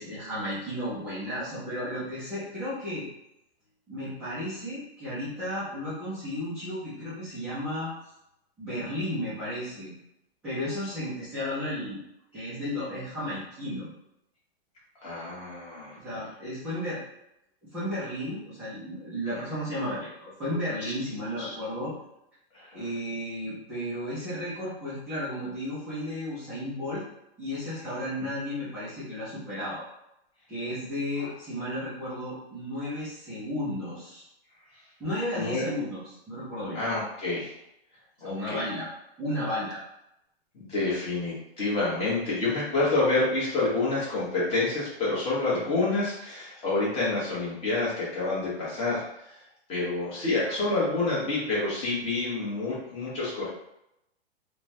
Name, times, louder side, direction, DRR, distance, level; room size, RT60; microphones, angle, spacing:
voice 1, 0.0-3.1 3.9-7.9 8.6-9.9 10.4-12.0 12.3-13.9 15.9-17.0 17.7-21.9 22.7-27.0 27.4-29.8 30.5-34.2 35.0-36.0 36.3-36.8 38.2-38.9 39.2-39.8, left 1 dB, 5° right, -15 dB, 0.3 m, -33 dB
voice 2, 15.0-16.0 20.8-20.9 21.4-21.5 22.5-22.9 31.2-31.3 35.3-35.6 36.7-37.6 38.2-38.6 40.5-49.4 49.7-53.5, left 2 dB, 20° left, -8 dB, 1.1 m, -28 dB
3.1 x 2.2 x 2.6 m, 0.82 s
hypercardioid pair, 155°, 32 cm